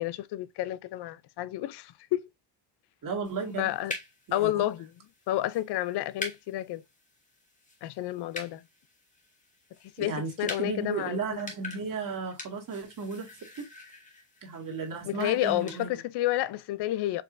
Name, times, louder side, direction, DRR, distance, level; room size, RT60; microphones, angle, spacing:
voice 1, 0.0-2.2 3.6-3.9 4.3-4.9 5.3-6.8 7.8-8.6 10.0-11.2 15.0-17.2, left 14 dB, 65° left, 0.5 m, -30 dB
voice 2, 3.0-3.7 4.3-4.6 10.0-13.3 14.4-16.0, right 4 dB, 45° right, 1.9 m, -34 dB
sound 1, 3.2-15.8, left 2 dB, 15° left, 1.5 m, -45 dB
4.6 x 3.1 x 2.5 m
cardioid pair, 100°, 45 cm